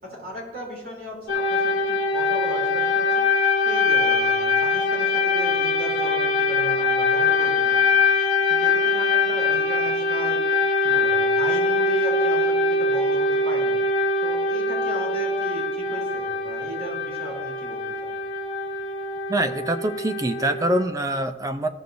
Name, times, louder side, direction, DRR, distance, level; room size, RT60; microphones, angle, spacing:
voice 1, 0.0-3.3 3.6-8.0 8.5-10.4 10.8-13.8 14.2-18.1, equal, 55° right, -3 dB, 3.2 m, -36 dB
sound 1, 1.3-20.8, left 3 dB, 85° left, 0.8 m, -23 dB
voice 2, 19.3-21.7, right 1 dB, 20° right, 9 dB, 0.4 m, -24 dB
14.0 x 6.7 x 2.6 m, 1.2 s
head